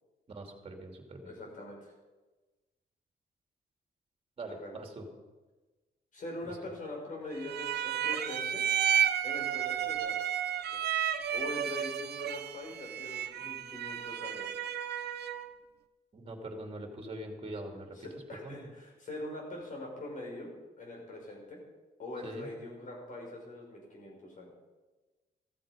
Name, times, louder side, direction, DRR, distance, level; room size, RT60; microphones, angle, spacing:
voice 1, 0.3-1.3 4.4-5.0 16.1-18.0 18.4-18.5 22.2-22.5, right 1 dB, 35° right, 3 dB, 2.7 m, -42 dB
voice 2, 1.3-1.9 4.5-4.8 6.1-8.6 9.2-10.2 10.7-10.8 11.3-14.6 18.0-20.5 20.8-21.6 22.0-24.5, left 1 dB, 50° left, -1 dB, 5.6 m, -43 dB
sound 1, 7.4-15.5, right 9 dB, 85° right, 0.9 m, -32 dB
14.5 x 14.5 x 5.2 m, 1.2 s
cardioid pair, 130°, 17 cm